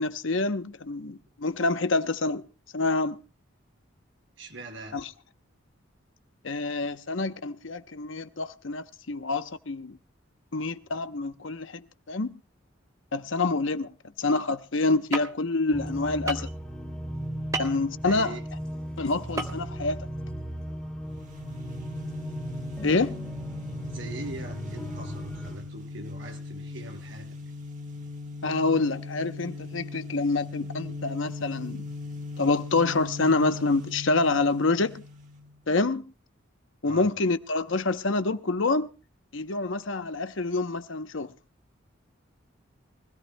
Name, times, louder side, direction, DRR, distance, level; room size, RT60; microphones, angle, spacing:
voice 1, 0.0-2.4 2.7-3.2 4.9-5.1 6.4-10.0 10.5-12.3 13.1-13.9 14.2-16.5 17.6-18.4 19.0-20.1 22.8-23.2 28.4-31.9 32.4-35.0 35.7-36.1 36.8-38.9 39.3-41.3, left 3 dB, 70° left, 0.9 m, -27 dB
voice 2, 4.4-5.0 18.0-18.4 23.9-27.3 36.8-37.1, right 2 dB, 70° right, 5.2 m, -41 dB
sound 1, 15.1-15.2 16.3-16.5 17.5-17.8 19.4-19.5 19.8-19.9, right 3 dB, 15° right, 1.5 m, -30 dB
sound 2, 15.7-25.6, right 1 dB, 5° left, 2.6 m, -37 dB
sound 3, 21.0-35.6, left 3 dB, 35° right, 1.5 m, -39 dB
24.0 x 16.5 x 2.2 m
head